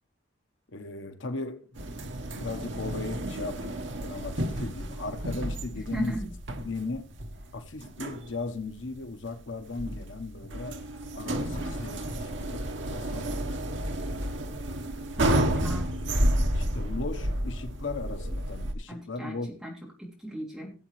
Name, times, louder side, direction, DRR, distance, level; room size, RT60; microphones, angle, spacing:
voice 1, 0.7-1.6 2.4-3.8 4.0-6.2 6.6-7.1 7.5-10.8 11.1-13.3 16.5-19.6, left 3 dB, 80° left, 1.1 m, -37 dB
sound 1, 1.8-18.7, right 1 dB, 75° right, 1.2 m, -31 dB
voice 2, 5.9-6.3 15.2-15.9 18.9-19.7 20.0-20.7, right 1 dB, ahead, 3.2 m, -36 dB
17.5 x 7.7 x 3.2 m
head